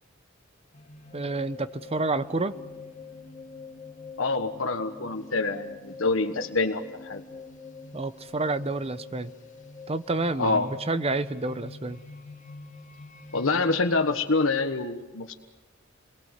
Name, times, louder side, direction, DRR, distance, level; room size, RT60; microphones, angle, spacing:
sound 1, 0.7-13.9, left 4 dB, 40° left, 2.3 m, -45 dB
voice 1, 1.1-2.5 7.9-9.3 9.9-12.0, right 2 dB, 30° right, 13 dB, 0.9 m, -29 dB
voice 2, 4.2-7.2 10.4-10.7 13.3-15.3, left 3 dB, 85° left, 5 dB, 1.4 m, -26 dB
28.5 x 21.5 x 8.2 m, 1.2 s
head